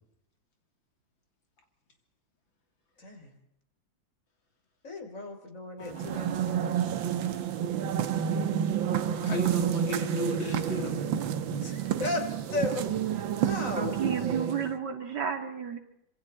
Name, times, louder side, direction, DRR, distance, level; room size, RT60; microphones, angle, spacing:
voice 1, 3.0-3.3 4.8-6.8 11.1-11.2 11.5-12.9 13.2-14.1, left 2 dB, 40° left, 4 dB, 3.9 m, -35 dB
sound 1, 5.8-14.8, right 9 dB, 90° right, 1.9 m, -29 dB
voice 2, 8.9-11.1, left 2 dB, 85° left, 4 dB, 3.8 m, -35 dB
voice 3, 13.7-15.8, right 7 dB, 60° right, 6 dB, 2.6 m, -32 dB
27.0 x 25.5 x 4.3 m, 0.80 s
omnidirectional pair, 2.1 m